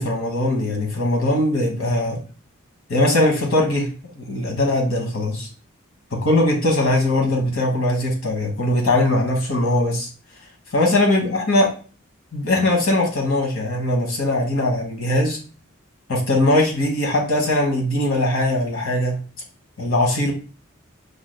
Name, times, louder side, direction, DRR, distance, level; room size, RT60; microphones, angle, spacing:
voice 1, 0.0-2.2 2.9-3.9 4.2-5.5 6.1-10.1 10.7-11.7 12.3-15.4 16.1-19.2 19.8-20.3, left 1 dB, 85° left, 0 dB, 1.2 m, -20 dB
4.9 x 3.2 x 2.2 m, 0.38 s
head